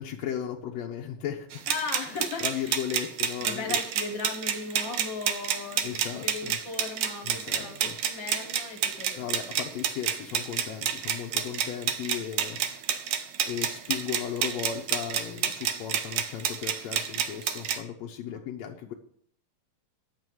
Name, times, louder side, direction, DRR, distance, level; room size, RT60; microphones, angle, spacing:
voice 1, 0.0-1.7 2.4-3.8 5.8-6.6 7.3-8.0 9.2-12.6 13.5-18.9, left 9 dB, 70° left, 0 dB, 1.7 m, -36 dB
sound 1, 1.5-17.8, right 9 dB, 70° right, 1.7 m, -30 dB
voice 2, 1.7-2.8 3.4-9.5 18.3-18.4, left 4 dB, 50° left, 4 dB, 1.6 m, -37 dB
11.0 x 7.5 x 6.3 m, 0.62 s
omnidirectional pair, 3.9 m